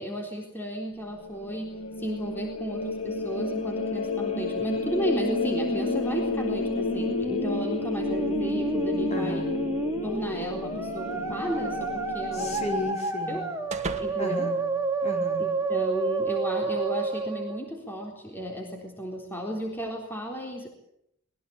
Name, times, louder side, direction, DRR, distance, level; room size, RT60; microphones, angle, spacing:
voice 1, 0.0-9.5 10.0-12.6 13.3-13.4 14.0-14.5 15.4-20.7, right 1 dB, 10° left, 1 dB, 3.8 m, -34 dB
sound 1, 1.0-12.9, left 3 dB, 70° left, 2.5 m, -32 dB
Musical instrument, 4.7-17.7, right 2 dB, 15° right, 3.0 m, -30 dB
voice 2, 9.1-9.6 12.3-13.5 14.2-14.7 15.0-15.6, left 1 dB, 35° left, 3 dB, 5.0 m, -34 dB
sound 2, 11.1-15.5, right 3 dB, 35° right, 2.2 m, -42 dB
26.0 x 21.0 x 8.7 m, 0.76 s
head